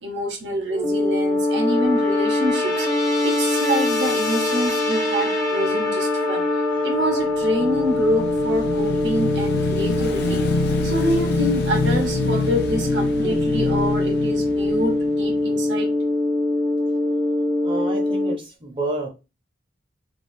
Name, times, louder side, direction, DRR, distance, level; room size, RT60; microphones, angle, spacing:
voice 1, 0.0-2.9 3.2-6.4 6.8-10.4 10.8-15.9, equal, 70° right, 0.9 m, -26 dB
sound 1, 0.7-18.3, left 1 dB, 20° left, 0.7 m, -23 dB
Motorcycle / Engine, 7.2-15.7, left 3 dB, 60° left, 0.5 m, -26 dB
voice 2, 17.6-19.1, right 3 dB, 25° right, 0.7 m, -30 dB
3.4 x 2.3 x 2.6 m
head